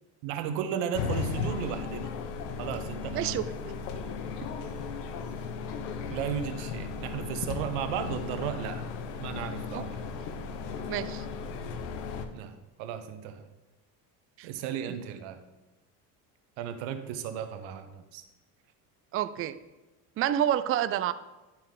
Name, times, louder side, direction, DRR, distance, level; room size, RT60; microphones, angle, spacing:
voice 1, 0.2-2.1 2.6-3.4 6.1-8.8 9.2-10.0 12.3-13.4 14.4-15.4 16.6-18.2, right 8 dB, 75° right, 9 dB, 1.0 m, -35 dB
sound 1, 0.9-12.3, left 5 dB, 85° left, 0.8 m, -36 dB
voice 2, 3.1-3.4 9.7-9.8 10.9-11.2 14.4-14.5 19.1-19.6 20.2-21.1, right 11 dB, 30° right, 13 dB, 0.4 m, -28 dB
11.0 x 4.4 x 3.8 m, 1.1 s
supercardioid pair, 90°, 46 cm